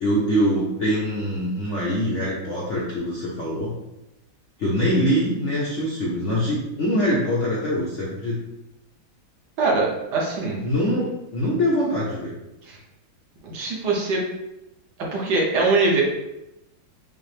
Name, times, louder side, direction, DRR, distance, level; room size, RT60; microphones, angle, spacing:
voice 1, 0.0-3.7 4.6-8.4 10.6-12.3, equal, 65° left, -6 dB, 0.7 m, -23 dB
voice 2, 9.6-10.6 12.6-12.8 13.4-14.2 15.1-16.0, right 3 dB, 65° right, -2 dB, 1.4 m, -22 dB
5.4 x 2.0 x 3.2 m, 0.92 s
omnidirectional pair, 2.1 m